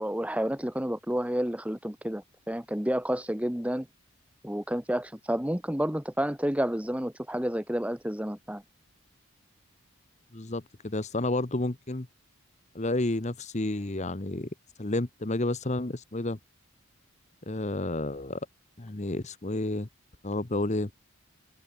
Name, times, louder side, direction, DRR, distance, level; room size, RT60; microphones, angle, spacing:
voice 1, 0.0-3.8 4.4-8.6, equal, 5° right, 1.3 m, -30 dB
voice 2, 10.3-12.1 12.7-14.5 14.8-16.4 17.5-18.4 18.8-19.9 20.2-20.9, left 2 dB, 30° left, 1.1 m, -30 dB
head